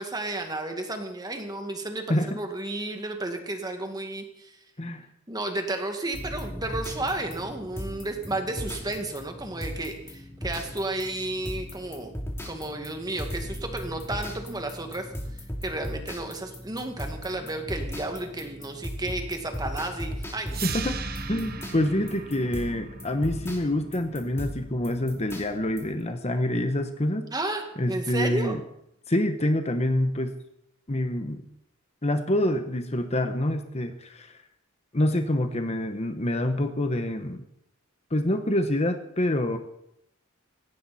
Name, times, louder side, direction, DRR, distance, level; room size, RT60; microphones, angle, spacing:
voice 1, 0.0-4.6 5.3-12.1 12.5-15.1 15.6-20.6 27.3-28.5, right 2 dB, 20° right, 5 dB, 2.0 m, -32 dB
sound 1, 6.1-26.0, equal, 10° left, 2.7 m, -37 dB
sound 2, 20.5-26.5, right 6 dB, 45° right, 1.3 m, -40 dB
voice 2, 20.6-21.0 21.3-27.3 27.8-28.6 29.1-30.3 30.9-31.4 32.0-34.4 34.9-37.5 38.1-39.6, left 1 dB, 30° left, 7 dB, 1.1 m, -26 dB
18.0 x 16.5 x 4.3 m, 0.78 s
head